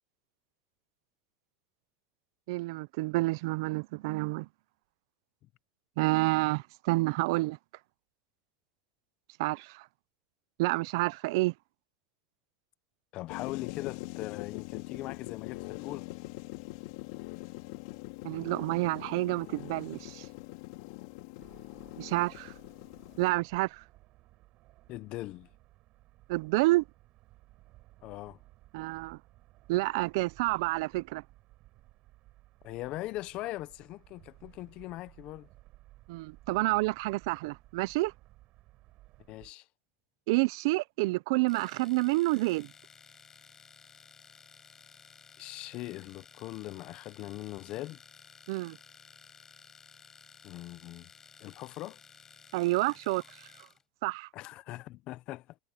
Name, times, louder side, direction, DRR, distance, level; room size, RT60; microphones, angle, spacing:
voice 1, 2.5-4.5 6.0-7.6 9.4-9.9 10.6-11.5 18.2-20.3 22.0-22.5 23.2-23.8 26.3-26.8 28.7-29.2 29.7-31.2 36.1-38.1 40.3-42.7 48.5-48.8 52.5-53.2 54.0-54.3, right 21 dB, 70° right, 0.4 m, -29 dB
voice 2, 13.1-16.1 24.9-25.5 28.0-28.4 32.6-35.5 39.3-39.7 45.4-48.0 50.4-51.1 51.4-52.0 54.3-55.6, left 17 dB, 45° left, 0.8 m, -40 dB
sound 1, 13.3-23.3, left 21 dB, 65° left, 3.8 m, -43 dB
sound 2, 21.4-39.5, right 18 dB, 45° right, 4.3 m, -59 dB
Domestic sounds home sounds, 41.5-53.8, left 6 dB, 20° left, 7.6 m, -56 dB
supercardioid pair, 145°, 2 cm